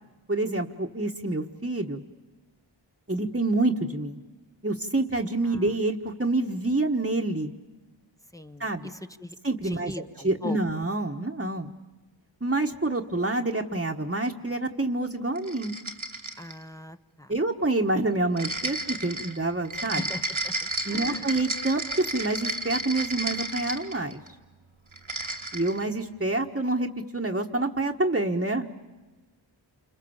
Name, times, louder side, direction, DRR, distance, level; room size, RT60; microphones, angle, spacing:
voice 1, 0.3-2.0 3.1-4.2 4.6-7.5 8.6-8.9 9.4-9.9 10.2-11.7 12.4-15.8 17.3-20.0 20.8-24.2 25.5-28.7, right 2 dB, 25° right, 0 dB, 1.4 m, -27 dB
voice 2, 8.3-8.9 9.2-9.3 9.6-10.6 16.4-17.3 20.0-20.5 20.9-21.3, left 1 dB, 5° left, 7 dB, 1.2 m, -39 dB
sound 1, 15.3-16.6 18.4-24.3 24.9-25.8, right 2 dB, 90° right, 2.4 m, -32 dB
29.0 x 27.5 x 7.2 m, 1.2 s
wide cardioid pair, 50°, 46 cm